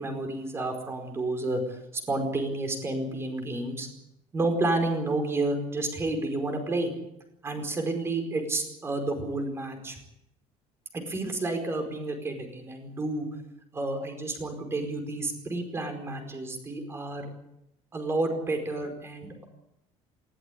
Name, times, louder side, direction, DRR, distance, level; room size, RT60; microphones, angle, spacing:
voice 1, 0.0-1.6 2.1-3.9 4.3-6.9 7.4-10.0 10.9-13.3 13.7-17.3 17.9-19.5, right 2 dB, 20° right, 5 dB, 4.8 m, -30 dB
19.5 x 17.0 x 9.8 m, 0.82 s
cardioid pair, 160°, 13 cm